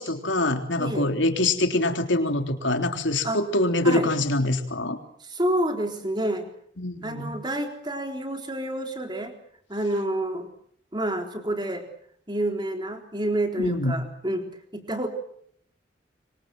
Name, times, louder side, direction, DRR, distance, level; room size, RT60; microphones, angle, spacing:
voice 1, 0.0-5.0 6.8-7.4 13.6-14.0, left 2 dB, 80° left, 6 dB, 3.6 m, -24 dB
voice 2, 0.8-1.1 3.2-3.4 3.8-4.1 5.2-6.5 7.0-9.3 9.7-10.5 10.9-11.9 12.3-14.5 14.7-15.1, right 1 dB, 25° right, 5 dB, 3.9 m, -28 dB
26.5 x 24.5 x 7.7 m, 0.66 s
head